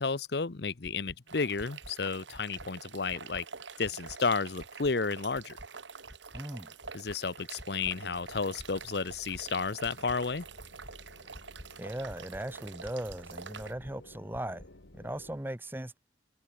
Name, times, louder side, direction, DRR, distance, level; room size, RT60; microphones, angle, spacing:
voice 1, 0.0-3.4 3.8-5.6 6.9-10.5, left 4 dB, 60° left, 0.8 m, -32 dB
sound 1, 0.8-1.2 1.6-1.9 2.3-2.7 3.1-3.4 3.8-4.2 4.6-4.9 5.3-5.7 6.1-6.4 6.8-7.2 7.6-7.9 8.3-8.7 9.1-9.4 9.8-10.2 10.6-10.9 11.3-11.7 12.1-12.4 12.8-13.2 13.6-13.9 14.3-14.7, equal, 10° left, 1.4 m, -49 dB
sound 2, 1.3-13.7, right 5 dB, 80° right, 2.1 m, -47 dB
voice 2, 6.3-6.7 11.8-14.6 14.9-16.0, right 1 dB, 10° right, 0.8 m, -38 dB
sound 3, 7.8-15.4, left 1 dB, 85° left, 2.2 m, -56 dB
head